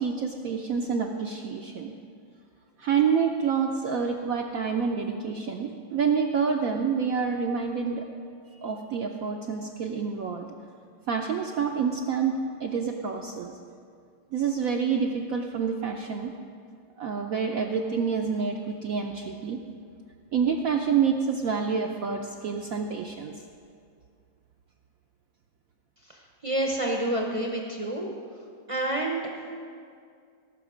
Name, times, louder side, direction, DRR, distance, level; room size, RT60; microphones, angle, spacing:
voice 1, 0.0-1.9 2.8-8.1 8.6-10.5 11.1-13.5 14.3-16.3 17.0-19.6 20.3-23.3, right 6 dB, 70° right, 2 dB, 0.8 m, -27 dB
voice 2, 26.1-28.1 28.7-29.3, right 1 dB, 35° right, 0 dB, 0.5 m, -28 dB
17.5 x 6.2 x 5.0 m, 2.2 s
omnidirectional pair, 2.1 m